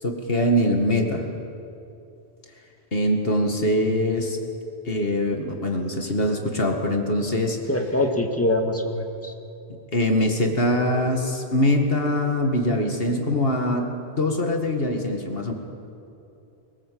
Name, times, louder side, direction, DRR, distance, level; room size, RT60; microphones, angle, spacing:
voice 1, 0.0-1.3 2.9-4.4 4.9-7.6 9.9-13.9 14.2-15.5, left 1 dB, 60° left, 3 dB, 2.2 m, -23 dB
voice 2, 7.7-9.3, left 1 dB, 10° left, 2 dB, 1.9 m, -24 dB
22.0 x 19.5 x 7.7 m, 2.8 s
omnidirectional pair, 1.1 m